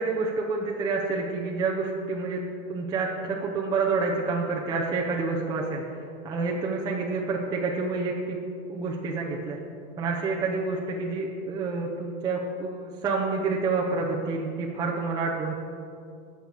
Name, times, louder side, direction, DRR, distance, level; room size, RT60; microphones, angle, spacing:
voice 1, 0.0-8.4 8.7-9.6 10.0-15.5, right 4 dB, 10° right, -3 dB, 0.5 m, -28 dB
18.5 x 6.7 x 4.8 m, 2.5 s
supercardioid pair, 170°, 37 cm